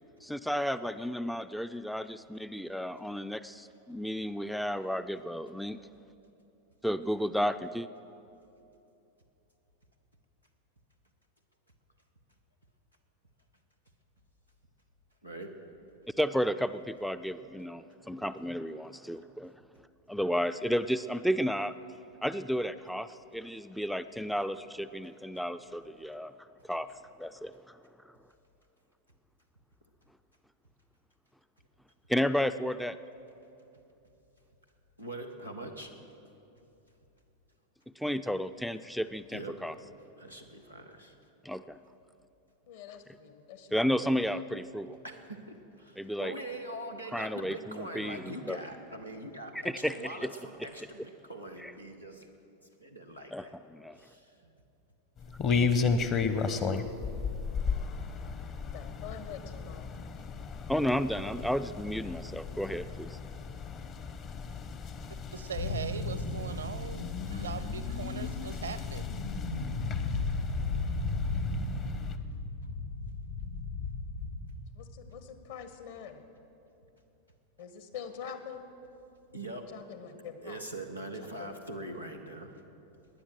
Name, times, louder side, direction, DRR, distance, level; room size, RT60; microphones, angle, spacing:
voice 1, 0.2-5.8 6.8-7.9 16.2-19.5 20.1-21.7 22.2-26.3 26.6-27.8 28.0-28.1 32.1-33.0 38.0-39.7 41.4-41.8 43.7-45.0 46.0-46.3 47.1-48.6 49.5-50.3 51.6-51.7 53.3-54.0 60.7-63.2, equal, ahead, 12 dB, 0.3 m, -32 dB
voice 2, 35.0-35.9 39.3-39.6 40.2-41.2 45.0-52.3 52.8-53.6 53.9-54.5 79.3-79.6 80.4-82.5, right 1 dB, 90° left, 2 dB, 1.4 m, -42 dB
voice 3, 42.7-43.7 44.0-44.2 58.7-59.8 74.7-76.2 77.6-78.7 79.7-80.6 81.2-81.5 82.0-82.1, left 8 dB, 55° left, 9 dB, 1.4 m, -45 dB
sound 1, 55.2-72.2, left 5 dB, 30° left, 0.8 m, -35 dB
voice 4, 65.3-69.1, right 6 dB, 70° right, 15 dB, 0.6 m, -40 dB
sound 2, 65.6-74.4, left 3 dB, 70° left, 2.3 m, -35 dB
18.5 x 10.0 x 6.3 m, 2.9 s
figure-of-eight pair, 90°, 0 cm